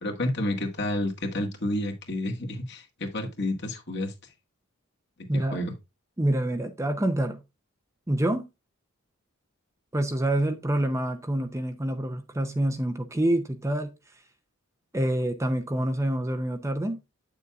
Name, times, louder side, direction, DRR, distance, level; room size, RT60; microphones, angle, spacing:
voice 1, 0.0-4.1 5.3-5.7, left 1 dB, 55° left, 1.8 m, -30 dB
voice 2, 5.3-5.6 6.2-7.4 8.1-8.5 9.9-13.9 14.9-17.0, right 1 dB, 15° right, 0.6 m, -27 dB
9.0 x 6.7 x 2.4 m
head